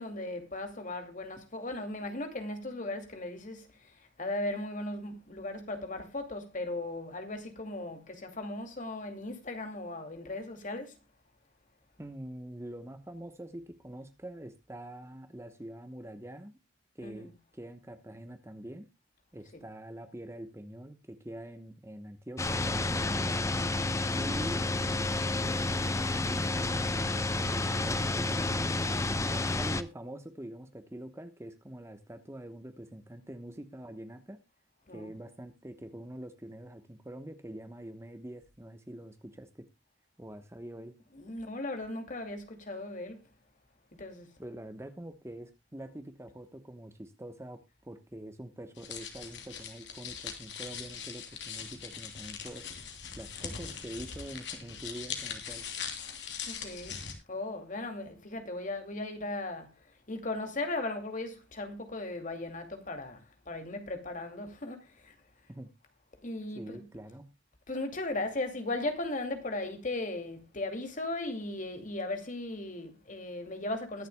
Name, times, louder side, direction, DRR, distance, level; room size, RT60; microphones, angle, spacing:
voice 1, 0.0-11.0 17.0-17.3 34.9-35.1 41.1-43.2 44.0-44.3 56.5-57.0 57.3-65.2 66.2-66.8 67.7-74.1, left 2 dB, 45° left, 2.5 m, -37 dB
voice 2, 12.0-16.6 16.9-18.9 19.3-23.1 24.1-24.7 25.4-28.7 29.3-34.4 34.9-39.7 40.2-40.9 44.4-52.7 53.2-55.7 65.5-65.7 66.5-67.3, right 1 dB, 15° right, 1.0 m, -45 dB
sound 1, 22.4-29.8, left 2 dB, 15° left, 0.7 m, -30 dB
sound 2, 48.8-57.1, left 7 dB, 70° left, 3.0 m, -41 dB
22.0 x 7.5 x 2.2 m
head